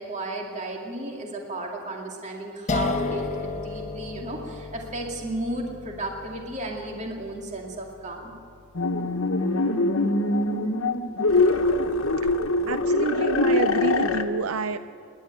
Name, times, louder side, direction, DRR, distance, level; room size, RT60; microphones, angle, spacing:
voice 1, 0.0-8.3, right 1 dB, 35° right, 0 dB, 2.5 m, -34 dB
sound 1, 2.7-9.6, left 3 dB, 35° left, 1.1 m, -34 dB
sound 2, 8.7-14.2, left 2 dB, 75° left, 1.3 m, -23 dB
voice 2, 12.7-14.8, right 5 dB, 80° right, 11 dB, 0.6 m, -28 dB
29.0 x 11.5 x 9.1 m, 2.3 s
head